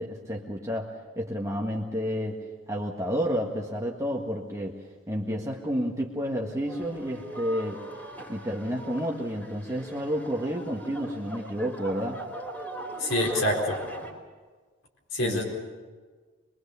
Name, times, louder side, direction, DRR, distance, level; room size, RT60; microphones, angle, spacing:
voice 1, 0.0-4.8 5.1-7.8 8.3-12.2 15.2-15.4, equal, 15° right, -1 dB, 1.6 m, -30 dB
sound 1, 6.7-14.1, right 1 dB, 10° left, 3.1 m, -40 dB
voice 2, 13.0-13.8 15.1-15.4, left 1 dB, 75° left, -1 dB, 4.3 m, -26 dB
24.0 x 22.5 x 7.0 m, 1.4 s
head